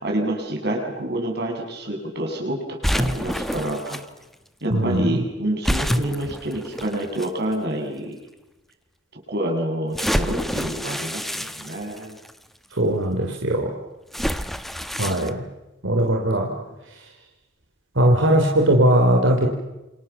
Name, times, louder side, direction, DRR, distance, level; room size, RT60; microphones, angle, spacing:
voice 1, 0.0-4.0 4.6-8.2 9.3-12.2, right 1 dB, 60° right, 1 dB, 7.4 m, -28 dB
sound 1, 2.8-4.0 5.6-7.3 8.0-8.1 9.9-12.3 14.1-15.3, equal, ahead, 1.1 m, -27 dB
voice 2, 4.7-5.2 12.8-13.7 15.0-15.5 15.8-16.5 18.0-19.5, right 1 dB, 85° right, 1 dB, 3.3 m, -19 dB
28.5 x 27.5 x 7.1 m, 1.0 s
head